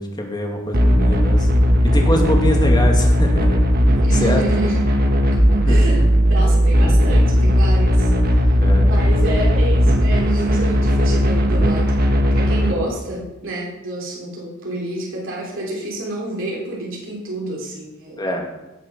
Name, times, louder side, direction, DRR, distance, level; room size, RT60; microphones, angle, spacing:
voice 1, 0.0-1.5 1.8-3.6 4.2-4.4 5.7-5.9 8.6-8.9 18.2-18.4, left 1 dB, 20° left, 1 dB, 2.1 m, -24 dB
sound 1, 0.7-12.7, equal, 45° right, 1.3 m, -16 dB
voice 2, 4.0-4.8 5.3-8.1 8.9-18.2, right 1 dB, 65° right, -3 dB, 3.5 m, -29 dB
17.5 x 6.8 x 6.0 m, 1.0 s
head